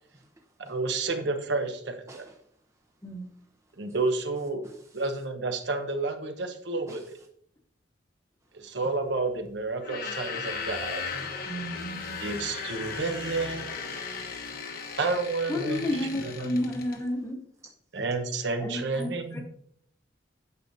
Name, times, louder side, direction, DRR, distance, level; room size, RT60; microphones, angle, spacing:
voice 1, 0.1-0.8 2.1-2.4 3.8-3.9 4.6-5.0 6.9-7.3 8.6-8.8 12.9-13.1 14.0-14.4, right 2 dB, 15° right, 0.7 m, -52 dB
voice 2, 0.7-2.2 3.8-4.6 4.9-7.2 8.5-11.2 12.2-13.7 15.0-15.8 16.2-16.5 17.9-19.4, right 3 dB, 65° right, 1.1 m, -30 dB
sound 1, 9.8-17.0, left 5 dB, 50° left, 1.1 m, -36 dB
voice 3, 11.4-12.2 15.5-17.4 18.6-19.4, left 1 dB, 15° left, 1.1 m, -31 dB
9.5 x 6.5 x 2.7 m
head